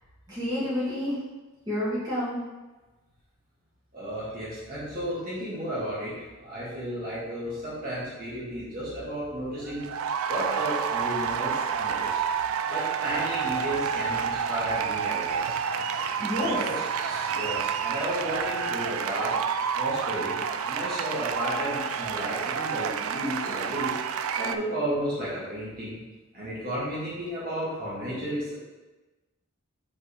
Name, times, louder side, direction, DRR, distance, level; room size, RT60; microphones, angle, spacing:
voice 1, 0.3-1.2 1.7-2.4 16.2-16.6, left 1 dB, 20° right, -10 dB, 1.9 m, -29 dB
voice 2, 3.9-9.9 10.3-12.2 12.7-15.6 16.4-19.3 19.7-20.4 20.6-24.0 24.4-26.0 26.3-28.6, equal, 40° right, -9 dB, 1.8 m, -33 dB
sound 1, 9.6-24.6, right 7 dB, 75° right, 0.4 m, -29 dB
5.6 x 3.7 x 5.0 m, 1.2 s
head